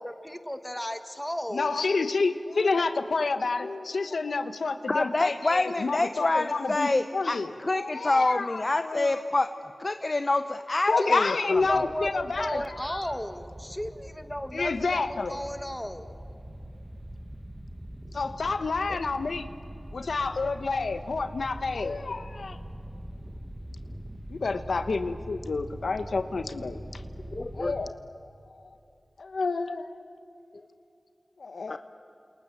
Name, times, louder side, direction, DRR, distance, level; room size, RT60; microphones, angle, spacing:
voice 1, 0.0-1.7 11.0-11.2 11.7-16.2, equal, 10° left, 8 dB, 1.8 m, -34 dB
voice 2, 1.5-9.2 10.9-13.0 14.5-15.4 18.1-19.5 19.9-22.6 24.3-27.0 27.5-28.0 29.2-29.9 31.4-31.8, left 4 dB, 90° left, 9 dB, 1.2 m, -29 dB
voice 3, 4.9-9.5 9.8-11.6 27.3-27.7 31.7-31.8, left 2 dB, 45° left, 9 dB, 0.8 m, -27 dB
sound 1, 11.5-27.9, equal, 15° right, 1.8 m, -43 dB
29.5 x 27.5 x 7.4 m, 2.9 s
wide cardioid pair, 55°, 0 cm